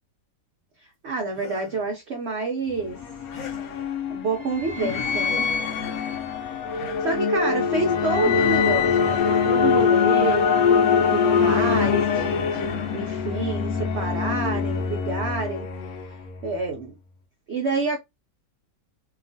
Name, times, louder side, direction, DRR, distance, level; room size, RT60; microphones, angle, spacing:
voice 1, 1.0-3.0 4.1-5.5 6.7-10.5 11.0-15.7 16.4-17.0 17.5-18.0, right 3 dB, 85° right, 0.6 m, -28 dB
sound 1, 1.3-1.9 3.3-3.8 5.2-5.4 5.7-6.0, left 6 dB, 25° left, 1.3 m, -43 dB
sound 2, 2.7-16.4, left 6 dB, 65° left, 1.0 m, -23 dB
2.8 x 2.4 x 2.6 m
omnidirectional pair, 1.9 m